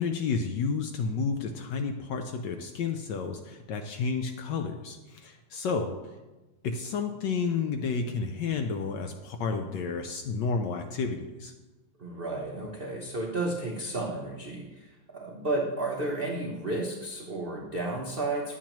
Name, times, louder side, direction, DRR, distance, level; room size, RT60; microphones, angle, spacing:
voice 1, 0.0-5.9 6.6-11.5, left 5 dB, 75° left, 5 dB, 1.1 m, -31 dB
voice 2, 12.0-18.5, right 2 dB, 60° right, -1 dB, 0.5 m, -32 dB
10.5 x 7.3 x 3.0 m, 1.1 s
omnidirectional pair, 2.3 m